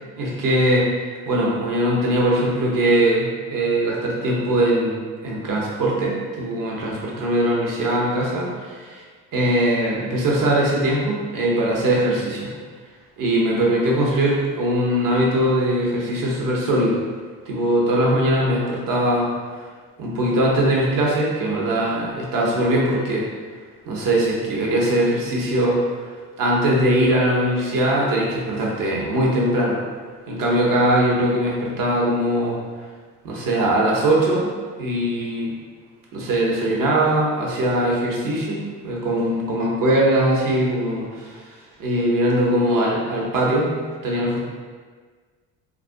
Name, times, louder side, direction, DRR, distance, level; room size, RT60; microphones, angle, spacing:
voice 1, 0.1-9.0 9.3-12.5 13.2-17.0 17.5-19.3 20.0-23.3 23.9-29.8 30.3-32.6 33.2-34.5 34.8-35.5 36.1-43.7 44.0-44.4, right 1 dB, 55° right, -3 dB, 0.8 m, -21 dB
2.4 x 2.0 x 2.5 m, 1.5 s
hypercardioid pair, 65°, 39 cm